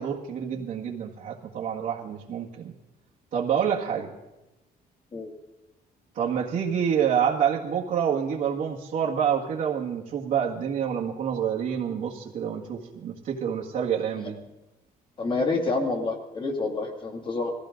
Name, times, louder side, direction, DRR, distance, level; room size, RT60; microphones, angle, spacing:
voice 1, 0.0-2.7 3.3-4.1 6.2-14.4, right 8 dB, 60° right, -3 dB, 1.8 m, -27 dB
voice 2, 15.2-17.5, left 3 dB, 30° left, 3 dB, 2.4 m, -28 dB
20.5 x 15.5 x 3.9 m, 0.98 s
cardioid pair, 150°, 16 cm